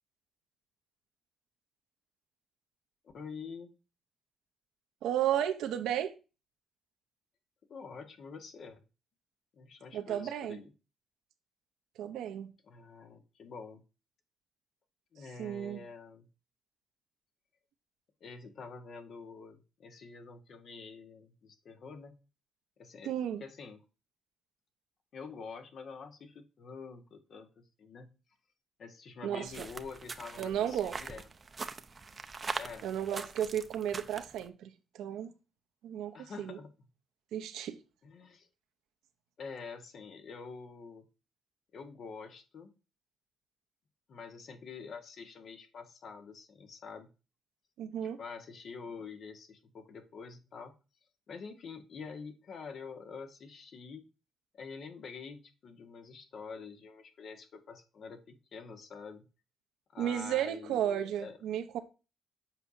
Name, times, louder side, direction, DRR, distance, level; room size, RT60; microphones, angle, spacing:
voice 1, 3.1-3.7 7.7-8.8 9.5-10.7 12.6-13.8 15.1-16.3 18.2-22.2 22.8-23.1 23.4-23.8 25.1-28.1 28.8-31.3 32.6-32.9 36.1-36.7 38.0-38.5 39.4-41.1 41.7-42.7 44.1-47.1 48.2-50.7 51.3-54.0 54.5-59.3 59.9-61.4, left 5 dB, 60° left, 1.3 m, -47 dB
voice 2, 5.0-6.1 9.9-10.6 12.0-12.5 15.4-15.8 23.0-23.4 29.2-29.7 30.4-31.0 32.8-35.3 35.8-36.6 37.3-37.8 47.8-48.2 60.0-61.8, right 10 dB, 85° right, 0.9 m, -33 dB
sound 1, 29.5-34.5, right 4 dB, 30° right, 0.6 m, -42 dB
7.5 x 5.0 x 2.7 m
cardioid pair, 90°, 0 cm